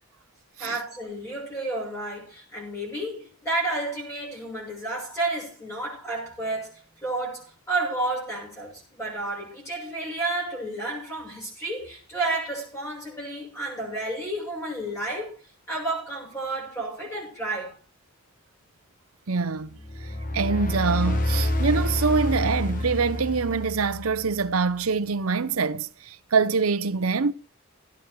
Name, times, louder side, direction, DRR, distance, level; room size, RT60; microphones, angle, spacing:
voice 1, 0.6-15.4 15.7-17.8, right 2 dB, 15° left, 6.7 m, -31 dB
voice 2, 19.3-20.1 20.3-27.3, right 4 dB, 90° right, 0.7 m, -25 dB
sound 1, 19.8-24.4, left 1 dB, 40° left, 1.5 m, -28 dB
17.0 x 9.6 x 4.6 m
head